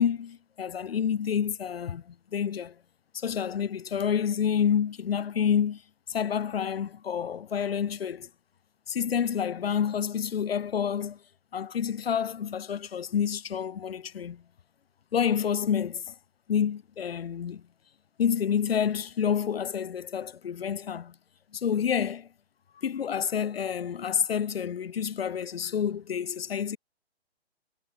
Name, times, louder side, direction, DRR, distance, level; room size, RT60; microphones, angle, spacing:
voice 1, 0.0-2.8 3.1-5.8 6.1-8.3 8.9-11.2 11.5-14.4 15.1-16.1 16.5-17.6 18.2-21.2 21.5-22.3 22.8-26.8, left 8 dB, 65° left, 0.7 m, -28 dB
figure-of-eight pair, 130°, 32 cm